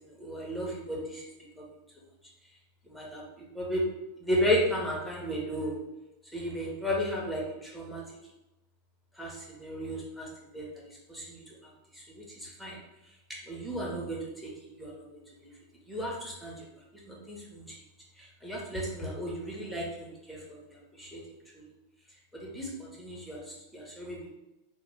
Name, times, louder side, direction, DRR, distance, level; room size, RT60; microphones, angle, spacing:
voice 1, 0.2-1.2 1.6-1.7 2.9-3.2 3.5-3.8 4.2-5.7 6.3-8.0 9.2-10.3 10.5-10.7 11.1-11.4 11.9-12.8 13.5-14.2 14.8-14.9 15.9-16.5 17.1-17.6 18.2-20.6 21.0-21.2 22.4-23.4 23.7-24.3, equal, ahead, -4 dB, 1.0 m, -33 dB
2.9 x 2.2 x 3.5 m, 0.97 s
figure-of-eight pair, 90°, 0 cm